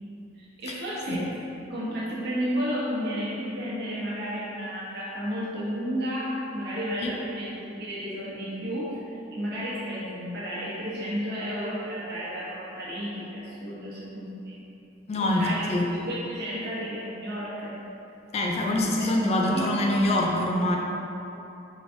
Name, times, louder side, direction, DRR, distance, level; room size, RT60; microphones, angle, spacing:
voice 1, 0.3-1.3 1.7-14.6 15.1-17.7 19.0-20.2, equal, 60° right, -8 dB, 1.1 m, -32 dB
voice 2, 15.1-15.9 18.3-20.8, left 1 dB, 35° left, 0 dB, 0.3 m, -25 dB
4.7 x 3.1 x 2.6 m, 2.9 s
head